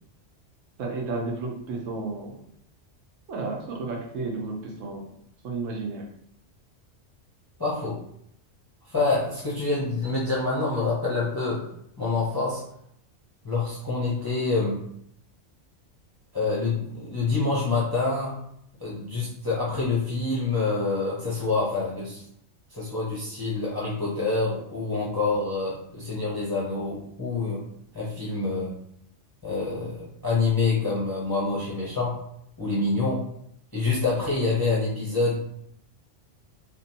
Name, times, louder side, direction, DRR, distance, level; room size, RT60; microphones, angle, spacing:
voice 1, 0.8-2.3 3.3-5.1 5.4-6.0, right 3 dB, 80° right, 0 dB, 1.1 m, -32 dB
voice 2, 7.6-8.0 8.9-11.6 12.0-12.6 13.4-14.8 16.3-18.3 18.8-22.2 22.7-27.6 27.9-28.7 29.4-32.2 32.6-33.2 33.7-35.4, left 3 dB, 30° left, -6 dB, 0.4 m, -26 dB
3.2 x 2.2 x 2.7 m, 0.71 s
omnidirectional pair, 1.3 m